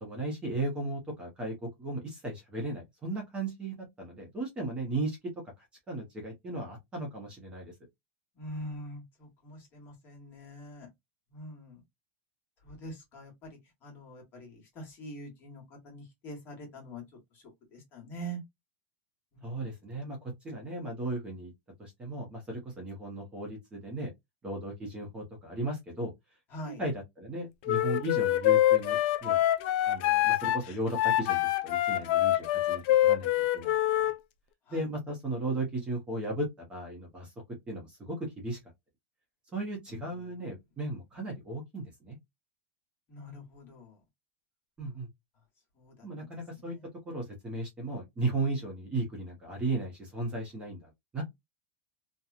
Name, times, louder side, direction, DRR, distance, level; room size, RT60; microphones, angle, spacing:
voice 1, 0.0-5.2 5.6-7.7 19.4-20.2 20.4-21.5 21.8-24.1 24.4-26.1 26.6-29.4 29.9-34.1 34.7-37.3 37.7-38.6 39.5-42.2 44.8-45.1 46.0-46.8 47.1-51.2, right 2 dB, 15° right, 0.8 m, -36 dB
voice 2, 8.4-10.9 11.3-11.8 12.6-17.0 17.3-17.4 17.7-18.4 19.3-19.6 26.5-26.8 34.7-34.9 39.9-40.0 43.1-44.0 45.8-46.3 46.6-46.9, right 1 dB, 30° left, 1.3 m, -44 dB
Wind instrument woodwind instrument, 27.6-34.2, left 14 dB, 45° left, 0.4 m, -25 dB
2.9 x 2.3 x 2.3 m
supercardioid pair, 160°, 7 cm